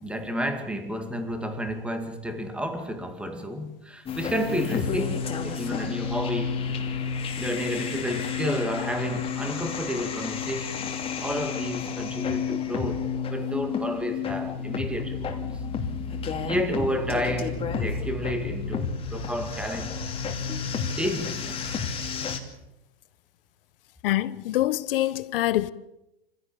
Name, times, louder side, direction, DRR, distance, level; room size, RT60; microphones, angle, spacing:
voice 1, 0.0-6.7 7.4-10.9 11.2-15.5 16.5-20.2 20.9-21.7, equal, 5° right, 2.2 m, -31 dB
sound 1, 4.1-22.4, left 6 dB, 15° left, 2.7 m, -31 dB
voice 2, 24.0-25.7, left 15 dB, 60° left, 1.2 m, -25 dB
26.0 x 16.5 x 8.6 m
hypercardioid pair, 140°, 31 cm